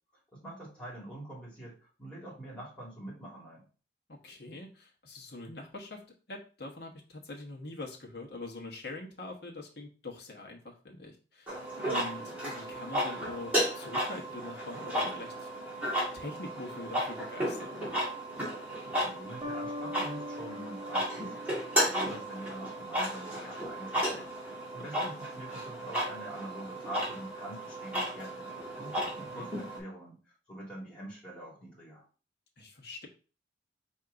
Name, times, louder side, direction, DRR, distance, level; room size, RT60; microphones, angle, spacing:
voice 1, 0.3-3.7 19.0-21.4 21.8-24.3 24.7-30.2 30.5-32.0, right 1 dB, 5° left, -6 dB, 2.3 m, -45 dB
voice 2, 4.2-6.0 6.3-11.5 11.8-15.5 15.8-17.8 24.9-25.0 29.2-29.5 32.6-33.1, left 2 dB, 60° left, -1 dB, 1.2 m, -43 dB
sound 1, 11.5-29.8, equal, 10° right, 1.7 m, -34 dB
sound 2, 19.4-22.2, left 1 dB, 25° right, 0.7 m, -42 dB
4.6 x 2.8 x 3.8 m, 0.36 s
head